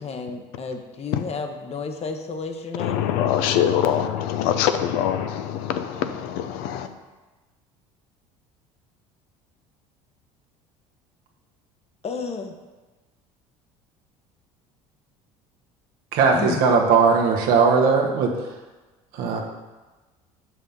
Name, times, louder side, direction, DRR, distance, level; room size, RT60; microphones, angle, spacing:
voice 1, 0.0-3.0 12.0-12.5 16.3-16.6, left 4 dB, 40° left, 6 dB, 1.1 m, -32 dB
voice 2, 2.8-6.9, left 10 dB, 70° left, 8 dB, 0.7 m, -23 dB
voice 3, 16.1-18.3 19.1-19.4, right 5 dB, 70° right, 1 dB, 1.3 m, -18 dB
5.8 x 5.6 x 5.4 m, 1.2 s
hypercardioid pair, 75°, 16 cm